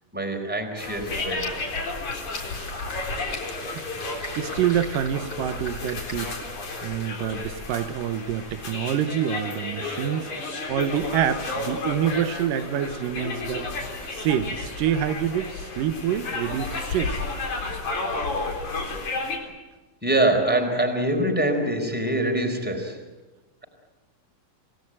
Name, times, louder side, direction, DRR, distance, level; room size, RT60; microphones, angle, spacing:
voice 1, 0.1-1.5 3.5-3.6 20.0-23.0, right 1 dB, 5° right, 3 dB, 4.0 m, -24 dB
sound 1, 0.8-19.4, left 3 dB, 60° left, 5.3 m, -32 dB
sound 2, 1.3-6.3, left 1 dB, 30° left, 4.3 m, -40 dB
voice 2, 3.7-6.5 6.8-13.7 14.1-17.2, right 10 dB, 90° right, 9 dB, 2.8 m, -27 dB
28.5 x 18.0 x 9.0 m, 1.2 s
omnidirectional pair, 3.8 m